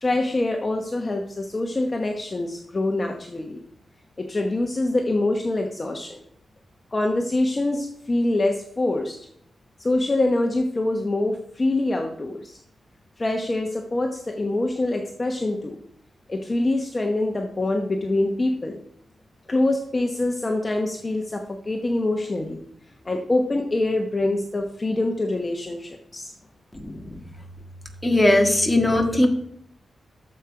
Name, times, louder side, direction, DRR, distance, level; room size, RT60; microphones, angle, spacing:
voice 1, 0.0-3.6 4.2-6.2 6.9-9.2 9.8-12.6 13.2-15.8 16.3-18.8 19.5-22.6 23.0-26.3, left 2 dB, 25° left, 3 dB, 1.1 m, -25 dB
voice 2, 26.7-27.2 28.0-29.3, left 1 dB, 10° left, 3 dB, 1.7 m, -19 dB
12.5 x 7.2 x 4.9 m, 0.70 s
wide cardioid pair, 130°, 0 cm